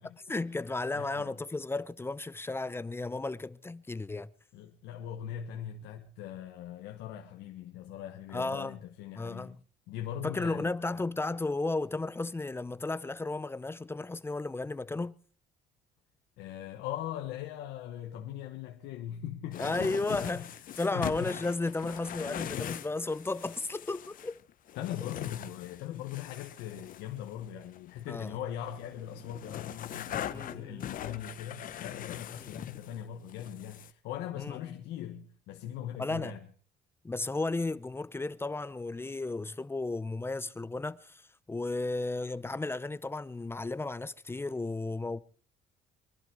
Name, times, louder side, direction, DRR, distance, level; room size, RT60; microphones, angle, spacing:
voice 1, 0.3-4.3 8.3-8.8 9.2-9.5 10.2-15.1 19.6-24.4 28.1-28.3 30.3-30.9 32.4-32.5 34.4-34.6 36.0-36.3 37.0-41.2 41.5-45.2, left 2 dB, 15° left, 0.6 m, -34 dB
voice 2, 0.9-1.4 4.5-9.6 9.9-10.8 16.4-20.4 20.9-21.3 24.7-36.5, left 10 dB, 90° left, 1.4 m, -40 dB
sound 1, 19.5-28.3 28.6-33.0 33.3-33.9, left 10 dB, 55° left, 0.9 m, -41 dB
23.5 x 11.5 x 4.7 m
cardioid pair, 110°, 17 cm